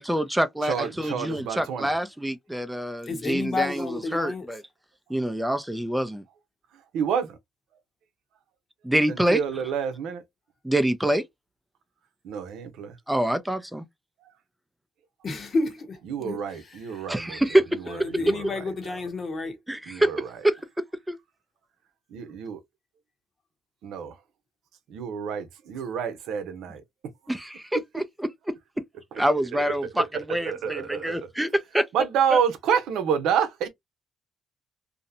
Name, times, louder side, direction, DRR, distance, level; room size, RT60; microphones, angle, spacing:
voice 1, 0.0-4.6 5.1-6.2 8.8-9.4 10.6-11.2 13.1-13.8 17.1-17.8 19.7-20.1 20.4-21.2 27.3-28.6 29.2-31.9, right 1 dB, 5° right, 0.5 m, -26 dB
voice 2, 0.6-1.9 6.9-7.4 9.1-10.2 12.2-13.0 16.1-17.4 18.1-18.6 19.9-20.3 22.1-22.6 23.8-24.1 24.9-26.8 29.5-29.7 30.4-31.2 31.9-33.7, right 7 dB, 85° right, 0.7 m, -28 dB
voice 3, 3.1-4.5 15.2-17.1 17.9-19.6, left 3 dB, 45° left, 1.0 m, -31 dB
2.7 x 2.1 x 2.6 m
cardioid pair, 90°, 0 cm